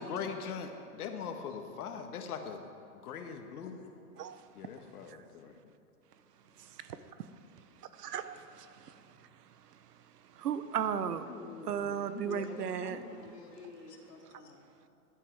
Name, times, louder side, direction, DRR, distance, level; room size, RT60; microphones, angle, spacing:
voice 1, 0.0-2.6 3.0-3.8 4.5-5.6, left 6 dB, 70° left, 5 dB, 1.6 m, -40 dB
voice 2, 8.0-8.9 10.4-11.3 11.7-13.0, right 8 dB, 85° right, 13 dB, 0.9 m, -35 dB
voice 3, 11.3-14.6, left 3 dB, 85° left, 1 dB, 2.4 m, -47 dB
14.5 x 9.9 x 4.6 m, 2.5 s
hypercardioid pair, 135°, 46 cm